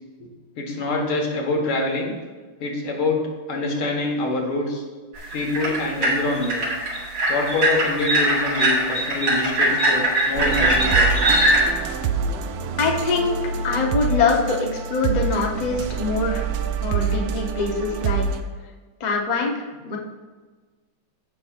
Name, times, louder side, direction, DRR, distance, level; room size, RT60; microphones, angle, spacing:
voice 1, 0.6-2.1 2.6-3.2 3.5-4.8 5.3-6.7 7.3-11.1 16.9-17.3, left 2 dB, 80° left, 0 dB, 2.4 m, -25 dB
sound 1, 5.2-11.7, right 1 dB, 55° right, 2.2 m, -21 dB
sound 2, 10.4-18.4, right 6 dB, 85° right, 1.5 m, -26 dB
voice 2, 12.8-13.3 13.6-16.5 16.8-18.3 19.0-20.0, left 4 dB, 50° left, 0 dB, 0.5 m, -23 dB
15.0 x 5.7 x 2.5 m, 1.4 s
omnidirectional pair, 2.3 m